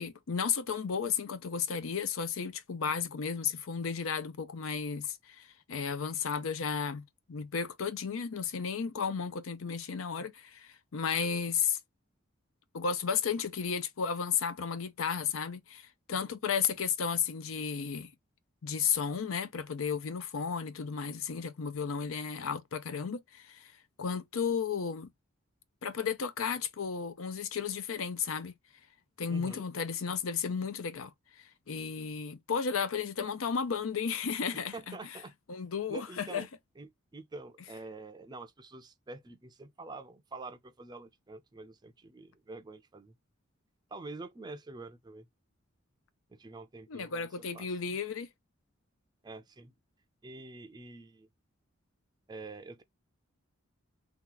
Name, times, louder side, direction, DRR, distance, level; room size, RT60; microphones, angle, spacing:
voice 1, 0.0-11.8 12.7-18.1 18.6-23.7 24.0-25.1 25.8-28.5 29.2-31.1 31.7-35.0 35.5-36.5 46.9-48.3, left 6 dB, 80° left, 0.5 m, -33 dB
voice 2, 29.3-29.6 34.7-35.3 35.9-36.5 36.8-43.2 43.9-45.3 46.3-47.3 47.5-47.7 49.2-49.7 50.2-51.3 52.3-52.8, right 3 dB, 20° right, 0.4 m, -46 dB
2.9 x 2.4 x 3.7 m
head